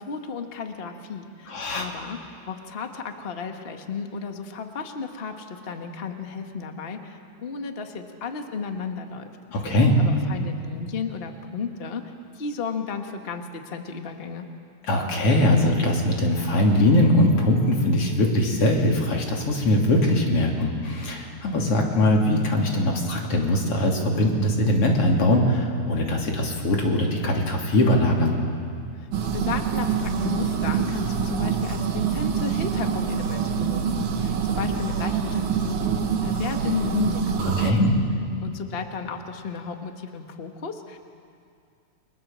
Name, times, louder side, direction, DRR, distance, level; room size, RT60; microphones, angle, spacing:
voice 1, 0.0-9.3 10.0-14.5 29.0-37.9 38.4-41.0, left 5 dB, 80° left, 5 dB, 0.5 m, -33 dB
voice 2, 1.5-1.9 9.5-10.0 14.9-28.4 37.6-37.9, left 1 dB, 45° left, 0 dB, 3.8 m, -21 dB
sound 1, 29.1-37.7, right 7 dB, 70° right, 2.9 m, -25 dB
29.5 x 23.5 x 7.5 m, 2.4 s
omnidirectional pair, 3.7 m